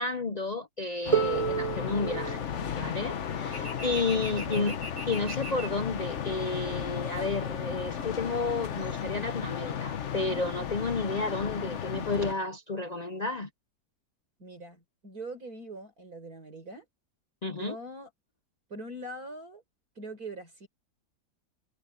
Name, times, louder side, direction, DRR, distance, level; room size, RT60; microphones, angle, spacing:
voice 1, 0.0-2.4 2.7-4.7 5.1-13.5 17.4-17.8, left 3 dB, 70° left, 0.4 m, -31 dB
sound 1, 1.1-12.3, left 8 dB, 50° left, 1.2 m, -35 dB
Harp, 1.1-6.9 8.0-8.1, right 7 dB, 20° right, 2.9 m, -34 dB
sound 2, 3.5-9.6, right 1 dB, 10° left, 3.9 m, -45 dB
voice 2, 4.3-4.8 14.4-16.9 17.5-18.1 18.7-19.6 20.0-20.7, right 2 dB, 60° right, 5.6 m, -42 dB
omnidirectional pair, 1.8 m